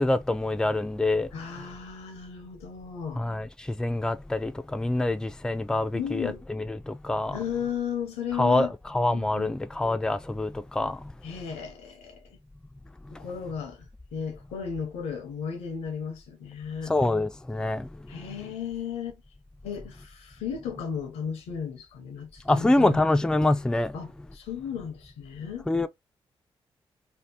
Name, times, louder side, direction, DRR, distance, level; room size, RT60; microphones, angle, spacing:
voice 1, 0.0-1.3 3.2-7.4 8.4-11.0 16.9-17.9 22.5-24.0 25.7-25.9, left 2 dB, 5° left, 0.3 m, -26 dB
voice 2, 1.3-3.2 5.9-6.4 7.3-8.7 9.1-9.6 11.2-12.2 13.1-16.9 18.1-19.2 19.6-23.0 23.9-25.7, left 7 dB, 90° left, 0.6 m, -35 dB
2.7 x 2.0 x 3.3 m
supercardioid pair, 45°, 11 cm